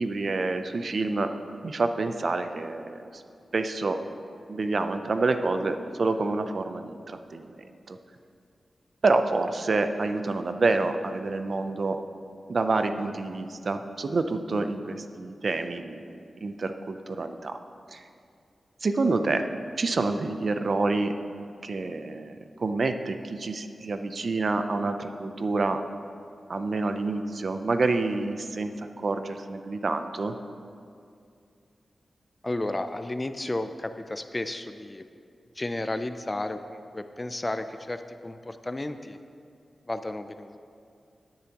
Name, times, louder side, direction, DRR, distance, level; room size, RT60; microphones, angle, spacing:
voice 1, 0.0-1.3 1.6-3.2 3.5-4.0 4.5-7.0 7.3-7.5 7.9-8.0 9.0-12.0 12.5-17.6 17.9-18.0 18.8-19.5 19.8-21.1 21.6-25.8 26.5-30.3, right 3 dB, 50° right, 8 dB, 0.5 m, -28 dB
voice 2, 32.4-35.1 35.6-39.2 39.9-40.6, left 2 dB, 20° left, 9 dB, 0.4 m, -33 dB
16.5 x 10.5 x 2.9 m, 2.4 s
wide cardioid pair, 130°, 0 cm